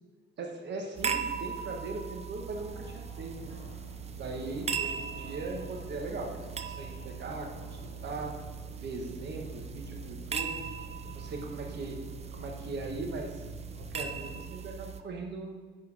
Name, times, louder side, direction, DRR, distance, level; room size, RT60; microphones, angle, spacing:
voice 1, 0.4-3.6 4.2-6.3 6.6-8.3 8.8-10.7 11.1-12.0 12.3-13.4 13.7-15.6, right 3 dB, 60° right, 1 dB, 1.4 m, -39 dB
sound 1, 1.0-15.0, right 7 dB, 30° right, 0.5 m, -39 dB
Fixed-wing aircraft airplane, 2.5-14.4, left 3 dB, 75° left, 1.2 m, -48 dB
9.7 x 4.6 x 3.5 m, 1.4 s
cardioid pair, 90°, 20 cm